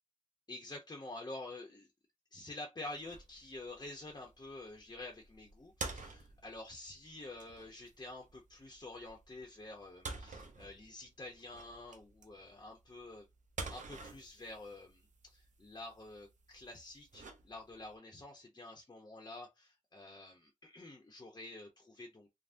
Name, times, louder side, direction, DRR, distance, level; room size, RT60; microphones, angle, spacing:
voice 1, 0.5-1.9 2.3-13.3 13.7-22.3, left 2 dB, 35° left, 0.7 m, -49 dB
sound 1, 2.8-17.9, right 3 dB, 70° right, 0.5 m, -50 dB
3.4 x 2.1 x 2.5 m
wide cardioid pair, 80°, 13 cm